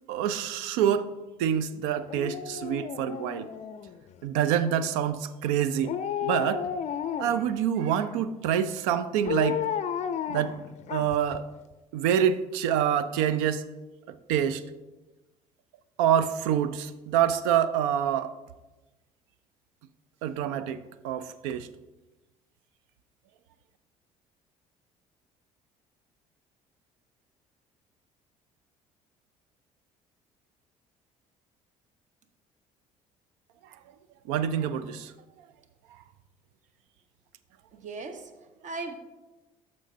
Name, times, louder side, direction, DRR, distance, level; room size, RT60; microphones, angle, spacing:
voice 1, 0.1-1.1 1.4-3.5 4.2-5.9 6.2-6.7 7.2-9.6 10.3-10.5 10.9-11.5 11.9-13.6 14.1-14.6 16.0-18.3 20.2-21.7 34.2-35.1, right 9 dB, 65° right, 14 dB, 0.5 m, -26 dB
Dog, 2.1-4.1 5.8-7.5 9.3-11.4 11.7-11.8, left 8 dB, 40° left, 0.5 m, -33 dB
voice 2, 37.7-39.0, right 3 dB, 40° right, 8 dB, 0.9 m, -38 dB
13.5 x 5.3 x 2.7 m, 1.1 s
figure-of-eight pair, 55°, 18 cm